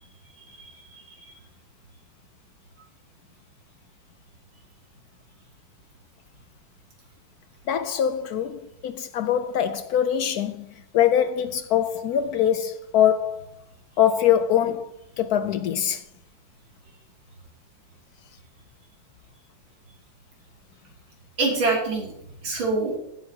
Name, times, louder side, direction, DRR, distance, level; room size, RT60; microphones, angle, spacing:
voice 1, 0.4-1.3 21.4-22.1 22.4-22.9, right 3 dB, 90° right, 3.4 m, -26 dB
voice 2, 7.7-13.5 14.0-16.0, left 10 dB, 75° left, 0.9 m, -23 dB
17.5 x 8.0 x 2.8 m
omnidirectional pair, 2.1 m